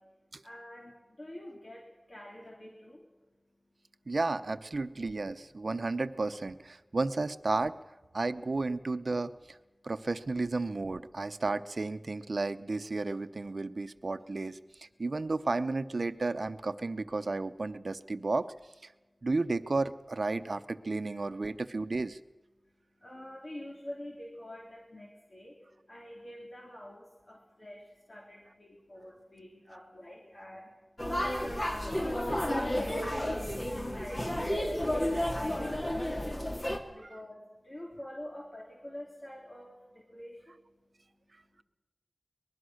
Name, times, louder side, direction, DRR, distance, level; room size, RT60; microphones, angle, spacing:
voice 1, 0.0-4.2 9.8-9.9 14.9-15.0 18.9-19.3 22.6-41.6, left 1 dB, 60° left, -2 dB, 3.5 m, -47 dB
voice 2, 4.1-7.7 8.1-9.6 9.8-18.5 18.8-18.9 19.2-22.2, right 3 dB, 80° right, 12 dB, 0.7 m, -33 dB
sound 1, 31.0-36.8, left 1 dB, 35° left, 2.3 m, -32 dB
24.0 x 20.5 x 6.4 m, 1.1 s
wide cardioid pair, 50°, 0 cm